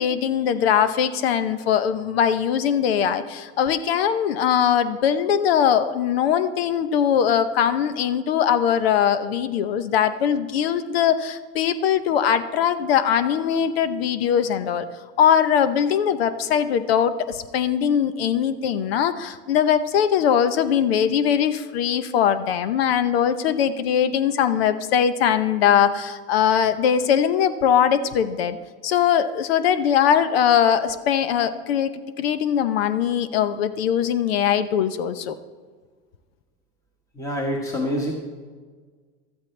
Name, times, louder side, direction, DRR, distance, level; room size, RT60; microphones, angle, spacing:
voice 1, 0.0-14.9 15.2-28.6 28.8-35.4, left 8 dB, 85° left, 12 dB, 0.8 m, -21 dB
voice 2, 37.1-38.1, equal, 10° left, 0 dB, 1.4 m, -26 dB
13.0 x 12.5 x 3.3 m, 1.5 s
supercardioid pair, 125°, 30 cm